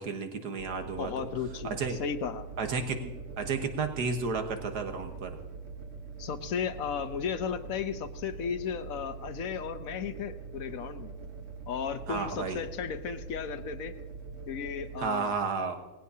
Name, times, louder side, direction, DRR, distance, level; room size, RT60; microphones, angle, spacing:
voice 1, 0.0-1.3 1.6-2.0 2.6-3.1 3.4-5.3 12.1-12.6 15.0-15.8, right 4 dB, 90° right, 5 dB, 1.8 m, -32 dB
sound 1, 0.6-15.1, right 5 dB, 55° right, 1.6 m, -43 dB
voice 2, 1.0-2.4 6.2-11.1 11.7-13.9 14.5-15.3, left 7 dB, 65° left, 10 dB, 1.2 m, -35 dB
19.5 x 16.5 x 2.8 m, 1.2 s
omnidirectional pair, 1.7 m